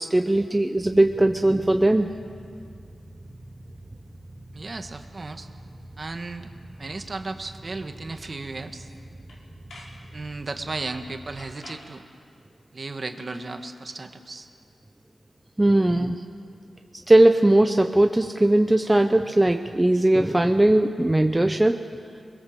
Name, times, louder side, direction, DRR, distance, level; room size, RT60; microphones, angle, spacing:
voice 1, 0.0-2.1 15.6-16.2 17.1-21.9, right 1 dB, 15° right, 5 dB, 0.7 m, -19 dB
Motorcycle / Idling, 0.8-11.5, right 1 dB, 60° right, 2.9 m, -45 dB
voice 2, 4.5-5.5 6.0-6.5 6.8-8.9 10.1-12.0 12.7-14.5, right 3 dB, 40° right, 6 dB, 1.5 m, -35 dB
sound 1, 8.2-8.3 8.7-9.0 9.3-10.0 10.9-11.1 11.4-11.9 13.1-13.5, left 2 dB, 80° left, 5.1 m, -48 dB
27.0 x 21.0 x 7.5 m, 2.4 s
wide cardioid pair, 110°, 0 cm